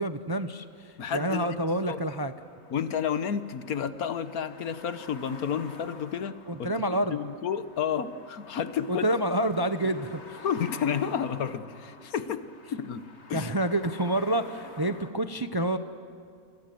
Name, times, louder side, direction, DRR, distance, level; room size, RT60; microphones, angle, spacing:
voice 1, 0.0-2.3 6.5-7.1 8.9-10.4 13.3-15.8, right 1 dB, 25° right, 10 dB, 0.5 m, -28 dB
voice 2, 1.0-1.6 1.9-2.0 2.7-6.7 7.1-9.1 10.4-12.5 12.7-13.0 13.3-13.5, left 7 dB, 70° left, 12 dB, 1.5 m, -31 dB
sound 1, 2.4-15.1, left 2 dB, 45° left, 2.2 m, -49 dB
28.5 x 26.0 x 7.8 m, 2.4 s
omnidirectional pair, 1.6 m